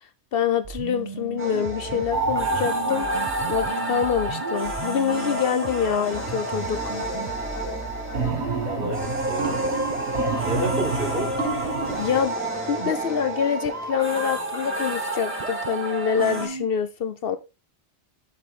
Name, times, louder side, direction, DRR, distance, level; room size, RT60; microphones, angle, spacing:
voice 1, 0.3-3.1 3.5-7.0 12.0-12.3 12.7-17.4, left 7 dB, 65° left, 0.8 m, -25 dB
sound 1, 0.6-16.7, right 5 dB, 40° right, 0.7 m, -36 dB
sound 2, 1.4-16.5, equal, 10° right, 2.1 m, -31 dB
sound 3, 2.1-12.2, right 3 dB, 85° right, 1.8 m, -30 dB
voice 2, 8.6-9.7 10.4-11.5, right 1 dB, 55° right, 2.8 m, -30 dB
7.0 x 5.6 x 3.8 m
omnidirectional pair, 1.1 m